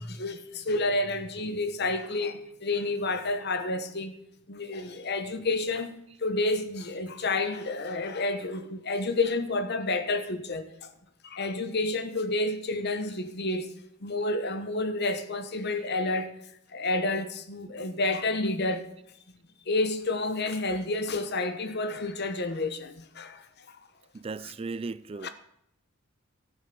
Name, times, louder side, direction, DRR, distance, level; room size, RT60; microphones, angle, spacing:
voice 1, 0.0-4.2 4.5-10.9 11.2-13.7 14.0-16.3 16.7-18.9 19.7-23.5 25.2-25.3, left 2 dB, 50° left, 1.1 m, -30 dB
voice 2, 24.1-25.3, right 4 dB, 25° right, 0.3 m, -36 dB
14.0 x 7.4 x 6.7 m
head